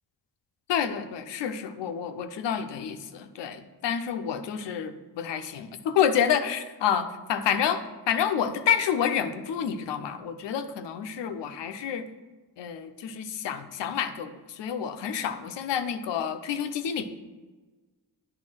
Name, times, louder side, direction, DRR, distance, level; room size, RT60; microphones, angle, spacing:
voice 1, 0.7-12.1 12.6-17.1, left 8 dB, 80° left, 8 dB, 0.7 m, -29 dB
8.7 x 3.4 x 6.1 m, 1.3 s
supercardioid pair, 50°, 42 cm